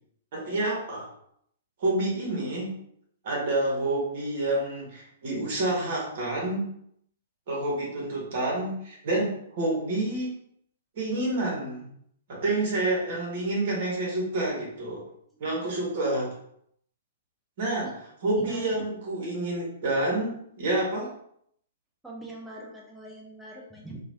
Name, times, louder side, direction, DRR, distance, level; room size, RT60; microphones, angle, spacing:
voice 1, 0.3-1.1 1.8-2.7 3.2-6.7 7.5-10.3 10.9-11.9 12.3-15.0 15.4-16.3 17.6-17.9 18.2-21.1, right 2 dB, 45° right, -2 dB, 1.1 m, -28 dB
voice 2, 18.3-18.8 22.0-24.0, right 1 dB, 5° right, -3 dB, 0.6 m, -42 dB
3.0 x 2.4 x 2.6 m, 0.70 s
figure-of-eight pair, 110°, 0 cm